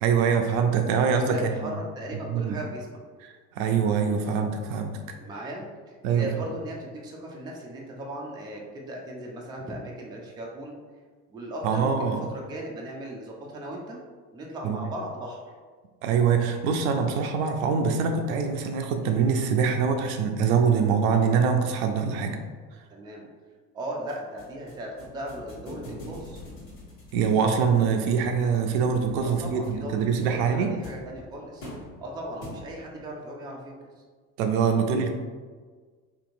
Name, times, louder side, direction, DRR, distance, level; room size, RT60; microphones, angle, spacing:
voice 1, 0.0-1.7 2.3-2.6 3.2-4.9 6.0-6.3 11.6-12.2 14.6-14.8 16.0-22.4 27.1-30.7 34.4-35.1, right 6 dB, 65° right, 5 dB, 0.5 m, -24 dB
voice 2, 1.1-3.0 5.2-10.8 11.3-14.0 14.3-15.4 22.9-23.3 23.7-26.4 29.2-31.7 32.0-33.9, right 1 dB, 10° right, -2 dB, 0.4 m, -37 dB
sound 1, 24.1-33.0, left 1 dB, 65° left, 1.3 m, -45 dB
2.8 x 2.8 x 2.5 m, 1.5 s
hypercardioid pair, 65°, 47 cm